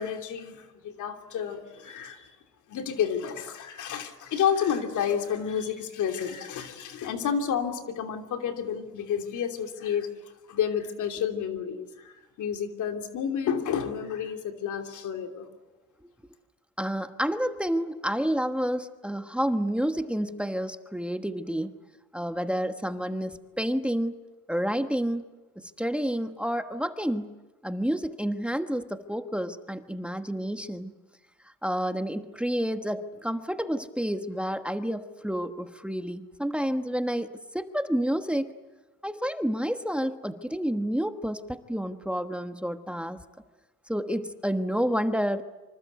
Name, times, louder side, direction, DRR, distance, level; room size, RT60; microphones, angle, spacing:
voice 1, 0.0-2.4 2.7-15.5, left 8 dB, 75° left, 5 dB, 3.0 m, -30 dB
voice 2, 16.8-21.7 22.1-24.2 24.5-25.2 25.6-27.3 27.6-30.9 31.6-37.3 37.5-38.5 39.0-43.2 43.9-45.4, equal, 5° right, 8 dB, 1.3 m, -29 dB
26.0 x 25.5 x 8.1 m, 1.1 s
cardioid pair, 90°, 30 cm